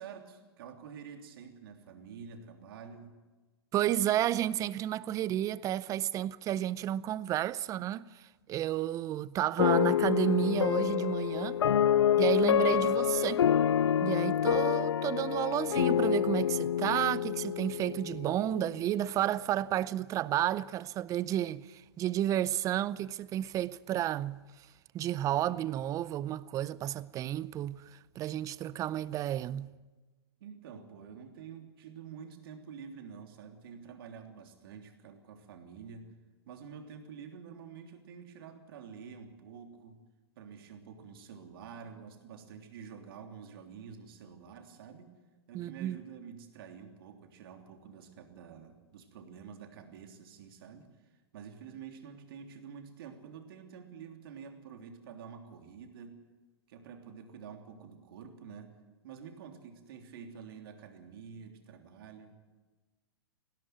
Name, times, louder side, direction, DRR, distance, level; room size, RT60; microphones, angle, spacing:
voice 1, 0.0-3.2 30.4-36.1 36.4-40.0 40.3-45.1 45.5-50.9 51.3-56.2 56.7-58.8 59.0-62.4, right 6 dB, 60° right, 3.3 m, -48 dB
voice 2, 3.7-8.2 8.5-11.6 12.2-13.5 14.0-24.4 24.9-29.7 45.5-46.0, right 12 dB, 25° right, 0.6 m, -31 dB
sound 1, 9.6-18.8, left 9 dB, 80° left, 0.5 m, -27 dB
18.0 x 17.5 x 9.3 m
hypercardioid pair, 125°, 14 cm